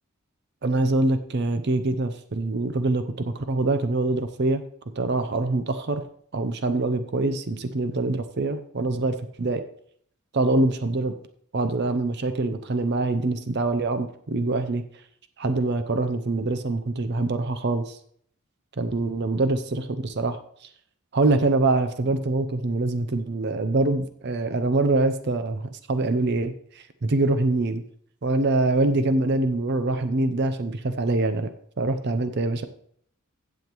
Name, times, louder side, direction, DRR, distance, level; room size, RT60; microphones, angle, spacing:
voice 1, 0.6-4.6 5.0-6.0 6.3-9.6 10.3-11.1 11.5-14.8 15.4-18.0 18.8-20.4 21.1-26.5 27.0-27.8 28.2-31.5 31.8-32.7, right 2 dB, 50° right, 9 dB, 0.6 m, -24 dB
16.0 x 7.1 x 3.0 m, 0.65 s
head